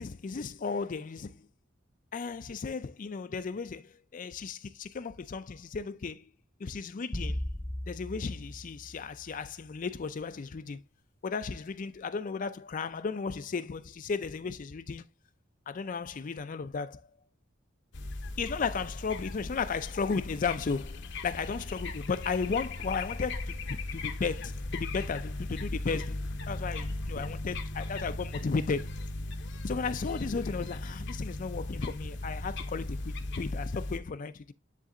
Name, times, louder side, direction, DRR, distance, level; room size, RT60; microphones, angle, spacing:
voice 1, 0.0-1.5 2.1-6.3 6.6-7.4 7.9-10.8 11.2-15.0 15.7-17.0 18.4-26.2 26.5-28.9 29.6-34.5, left 5 dB, 45° left, 0.4 m, -35 dB
sound 1, 7.1-9.6, left 1 dB, 15° left, 0.7 m, -37 dB
sound 2, 17.9-34.0, left 2 dB, 65° left, 0.8 m, -37 dB
9.9 x 3.3 x 3.8 m
head